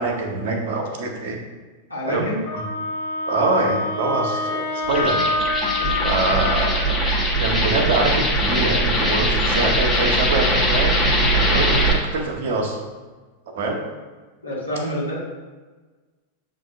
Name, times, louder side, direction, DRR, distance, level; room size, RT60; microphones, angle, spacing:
voice 1, 0.0-1.4 2.1-2.3 2.5-2.6 3.3-5.2 6.0-7.0 7.4-11.0 11.3-12.8 13.5-13.8, right 3 dB, 55° right, 3 dB, 0.6 m, -24 dB
voice 2, 1.9-2.4 14.4-15.2, equal, 85° left, -8 dB, 1.3 m, -26 dB
Wind instrument woodwind instrument, 2.5-6.9, left 2 dB, 55° left, 0.5 m, -26 dB
sound 1, 4.8-11.9, equal, 15° left, 0.8 m, -21 dB
7.1 x 2.5 x 2.3 m, 1.3 s
figure-of-eight pair, 90°, 0 cm